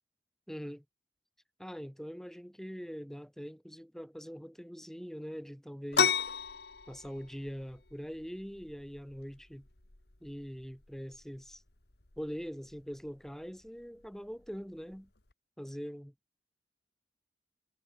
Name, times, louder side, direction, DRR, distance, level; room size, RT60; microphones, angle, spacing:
voice 1, 0.5-0.8 1.6-6.2 6.9-9.7 10.2-11.6 12.2-15.1 15.6-16.1, equal, ahead, 5.1 m, -43 dB
sound 1, 5.9-15.3, left 6 dB, 65° left, 2.2 m, -37 dB
head